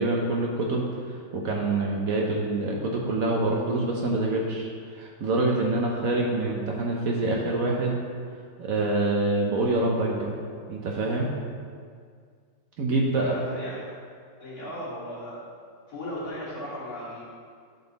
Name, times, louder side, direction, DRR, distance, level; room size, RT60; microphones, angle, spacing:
voice 1, 0.0-8.0 8.6-10.3 10.7-11.3 12.8-13.3, right 2 dB, 65° right, -1 dB, 0.8 m, -26 dB
voice 2, 13.1-13.9 14.4-15.5 15.9-17.2, equal, 45° left, -9 dB, 2.7 m, -36 dB
10.5 x 3.9 x 4.0 m, 2.1 s
omnidirectional pair, 2.3 m